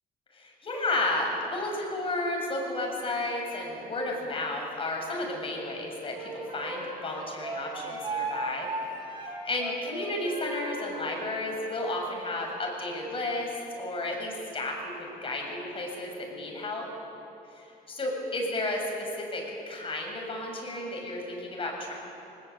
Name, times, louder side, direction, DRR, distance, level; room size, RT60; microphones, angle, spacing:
voice 1, 0.3-8.7 9.2-13.5 13.8-16.9 17.5-21.9, left 2 dB, 30° left, 0 dB, 7.3 m, -32 dB
Wind instrument woodwind instrument, 6.1-11.2, right 2 dB, 30° right, 7.2 m, -36 dB
25.0 x 20.0 x 8.6 m, 2.9 s
cardioid pair, 110°, 17 cm